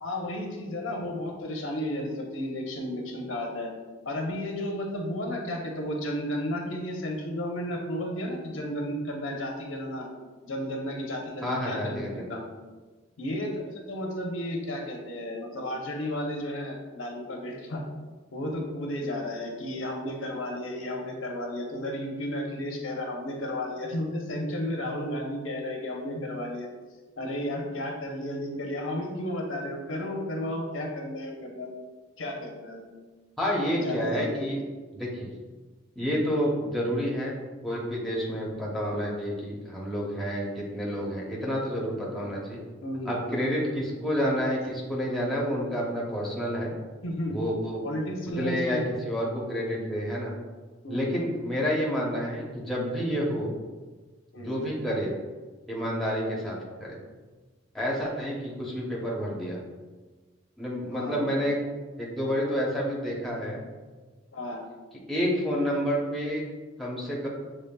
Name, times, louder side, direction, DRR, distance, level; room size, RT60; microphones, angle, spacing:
voice 1, 0.0-3.7 4.1-10.1 10.4-12.4 13.2-17.8 18.3-26.7 27.2-31.7 32.2-32.9 33.8-34.5 42.8-43.4 47.0-47.4 47.8-48.8 50.8-51.2 54.3-54.6 60.9-61.3 64.3-64.6, left 1 dB, 80° left, 0 dB, 0.8 m, -33 dB
voice 2, 11.4-12.3 33.4-34.6 34.9-35.3 36.0-37.4 37.6-42.6 43.1-46.7 47.3-47.8 48.3-50.3 50.9-53.5 54.4-55.1 55.7-57.0 57.7-59.6 60.6-61.6 62.0-63.6 65.1-66.4 66.8-67.3, equal, ahead, -4 dB, 0.7 m, -29 dB
6.7 x 3.0 x 2.2 m, 1.3 s
head